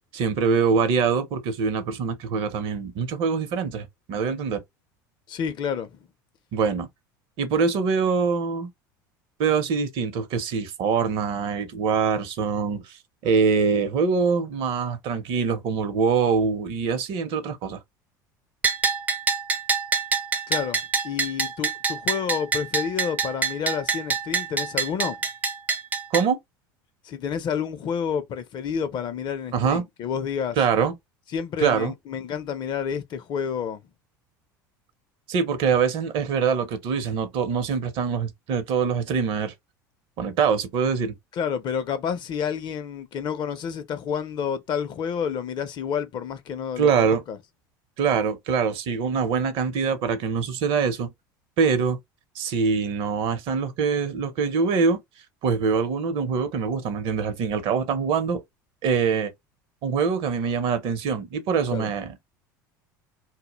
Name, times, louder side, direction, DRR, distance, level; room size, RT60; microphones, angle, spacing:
voice 1, 0.1-4.6 6.5-6.9 7.4-8.7 9.4-17.8 26.1-26.4 29.5-29.8 30.6-30.9 31.6-31.9 35.3-39.5 40.2-41.1 46.8-47.2 48.0-51.1 51.6-52.0 52.4-55.0 55.4-58.4 58.8-59.3 59.8-62.1, right 5 dB, 55° right, 0.6 m, -24 dB
voice 2, 5.3-6.0 20.5-25.2 27.0-30.6 31.3-33.8 41.4-47.4 61.7-61.9, left 7 dB, 45° left, 0.5 m, -29 dB
Bell, 18.6-26.3, right 5 dB, 15° right, 0.4 m, -26 dB
2.1 x 2.1 x 2.9 m
hypercardioid pair, 80°, 10 cm